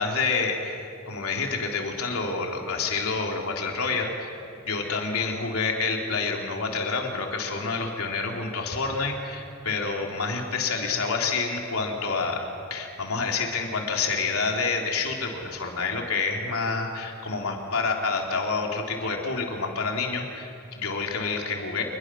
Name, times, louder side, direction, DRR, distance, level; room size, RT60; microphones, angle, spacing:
voice 1, 0.0-4.3 4.6-12.4 12.7-21.8, left 4 dB, 75° left, 1 dB, 3.4 m, -28 dB
28.0 x 21.5 x 6.3 m, 2.7 s
head